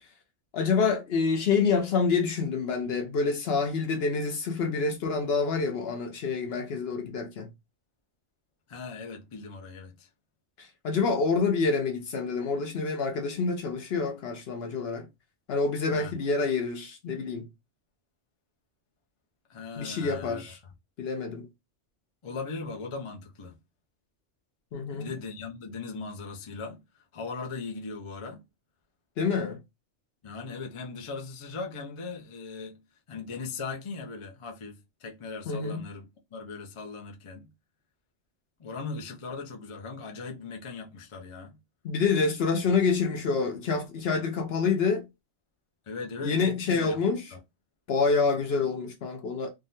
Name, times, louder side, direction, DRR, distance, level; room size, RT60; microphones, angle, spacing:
voice 1, 0.5-7.5 10.6-15.1 15.5-17.5 19.8-20.6 21.0-21.5 24.7-25.1 29.2-29.6 35.5-35.8 41.8-45.0 46.2-47.2 47.9-49.5, left 4 dB, 60° left, 0.8 m, -27 dB
voice 2, 8.7-10.1 15.9-16.1 19.5-20.4 22.2-23.6 24.9-28.4 30.2-32.8 33.1-36.1 36.3-37.5 38.6-41.6 45.9-47.0 47.3-47.4, left 4 dB, 40° left, 0.5 m, -39 dB
3.5 x 2.1 x 2.6 m
omnidirectional pair, 1.3 m